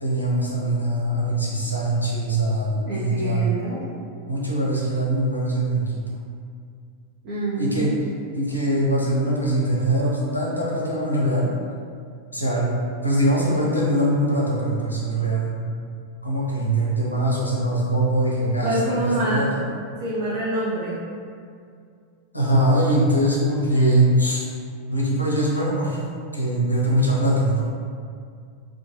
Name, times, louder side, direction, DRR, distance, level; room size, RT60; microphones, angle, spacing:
voice 1, 0.0-3.5 4.3-6.0 7.6-7.9 8.3-11.5 12.3-15.6 16.2-19.6 22.3-24.5 24.9-26.0 26.3-27.6, right 1 dB, 85° left, -4 dB, 0.4 m, -22 dB
voice 2, 2.9-3.8 7.2-7.9 18.6-19.5 20.0-21.0, right 1 dB, 45° right, -8 dB, 0.5 m, -26 dB
2.4 x 2.3 x 2.5 m, 2.3 s
figure-of-eight pair, 90°, 0 cm